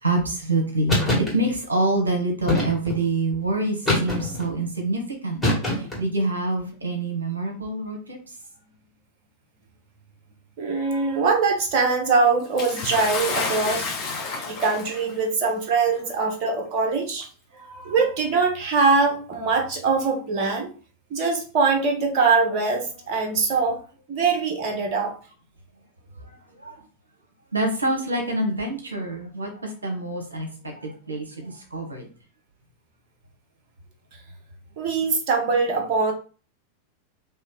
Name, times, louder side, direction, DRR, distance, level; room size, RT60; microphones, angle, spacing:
voice 1, 0.0-8.4 26.1-26.8 27.5-32.1, right 2 dB, 75° right, 3 dB, 0.8 m, -27 dB
sound 1, 0.9-1.3 2.5-3.0 3.9-4.5 5.4-6.1, left 1 dB, 5° left, 2.0 m, -23 dB
voice 2, 10.6-13.9 14.4-17.3 17.5-20.7 21.1-23.8 24.1-25.1 34.8-36.1, right 4 dB, 40° right, 2 dB, 0.9 m, -22 dB
Bathtub (filling or washing) / Splash splatter, 12.6-15.2 16.1-16.2 17.2-17.3, left 4 dB, 40° left, 1.0 m, -30 dB
3.3 x 2.7 x 3.8 m, 0.38 s
figure-of-eight pair, 90°, 0 cm